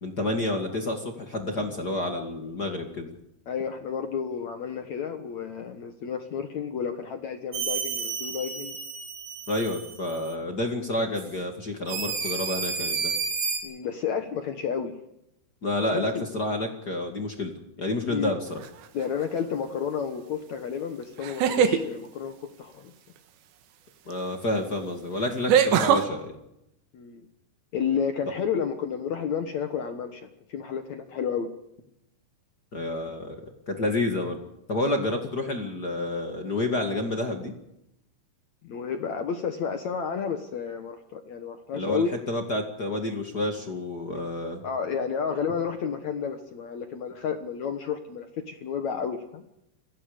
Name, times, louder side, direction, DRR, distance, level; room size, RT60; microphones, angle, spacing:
voice 1, 0.0-3.1 9.5-13.1 15.6-18.6 24.1-26.3 32.7-33.4 33.7-34.4 34.7-37.5 41.7-44.6, left 2 dB, 40° left, 4 dB, 1.4 m, -29 dB
voice 2, 3.5-8.8 13.6-14.9 15.9-16.2 18.0-18.4 18.9-22.9 26.9-27.3 27.7-31.5 38.6-42.1 44.1-44.2 44.6-49.4, left 7 dB, 70° left, 7 dB, 1.7 m, -31 dB
sound 1, 7.5-10.3 11.1-11.3 11.9-13.6, right 5 dB, 55° right, 4.7 m, -31 dB
sound 2, 18.6-19.0 21.2-21.8 24.1-24.2 25.5-26.0, right 8 dB, 75° right, 3.7 m, -21 dB
28.5 x 18.0 x 5.2 m, 0.82 s
omnidirectional pair, 5.3 m